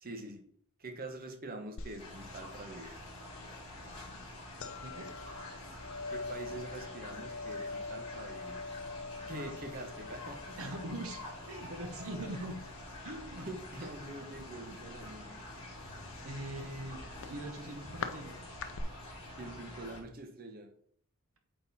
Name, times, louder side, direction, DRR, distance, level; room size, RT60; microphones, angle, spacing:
voice 1, 0.0-0.4 0.8-2.9 6.1-8.6 9.3-10.5 13.4-15.3 19.4-20.7, right 2 dB, 40° right, 5 dB, 1.1 m, -45 dB
sound 1, 1.8-18.8, left 4 dB, 60° left, 0.5 m, -46 dB
sound 2, 2.0-20.0, left 1 dB, 25° left, 2.7 m, -47 dB
voice 2, 10.6-12.6 13.0-13.5 16.2-17.0 17.3-18.4, right 1 dB, 70° right, 4 dB, 1.1 m, -42 dB
8.3 x 4.0 x 4.1 m, 0.62 s
head